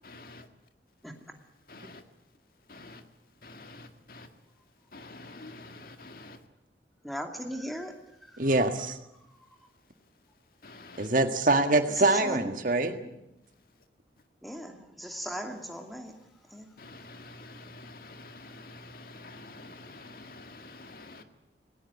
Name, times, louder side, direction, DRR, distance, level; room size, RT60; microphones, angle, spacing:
voice 1, 0.0-0.4 1.7-2.0 2.7-3.0 3.4-4.3 4.9-6.4 10.6-11.1 16.8-21.2, left 2 dB, 50° left, 7 dB, 1.9 m, -47 dB
voice 2, 7.0-7.9 8.2-8.4 11.9-12.7 13.0-13.1 14.4-16.1 16.5-16.7, equal, ahead, 4 dB, 2.5 m, -38 dB
voice 3, 8.4-9.0 11.0-12.9, right 2 dB, 45° right, 7 dB, 1.7 m, -24 dB
19.5 x 19.0 x 9.6 m, 0.85 s
head